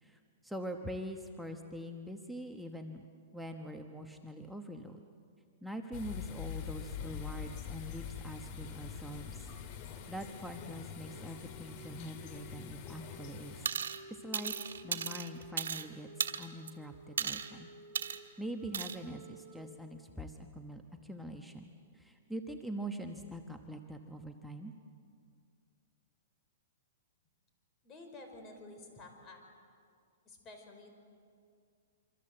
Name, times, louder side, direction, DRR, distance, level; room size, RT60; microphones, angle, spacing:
voice 1, 0.0-3.0 3.3-5.0 5.6-9.5 10.1-13.7 14.1-17.7 18.4-24.7, equal, ahead, 3 dB, 1.1 m, -44 dB
sound 1, 5.9-13.7, left 8 dB, 40° left, 1.9 m, -44 dB
sound 2, 11.0-12.6 12.9-18.3 18.6-19.7, equal, 15° right, 5.1 m, -54 dB
sound 3, 13.6-14.0 14.3-15.8 16.2-16.7 17.2-17.5 17.9-18.2 18.7-19.0, right 7 dB, 90° right, 1.5 m, -35 dB
voice 2, 27.8-29.4 30.2-30.9, left 2 dB, 25° left, 3 dB, 4.8 m, -51 dB
26.5 x 25.0 x 7.8 m, 2.3 s
hypercardioid pair, 155°, 0 cm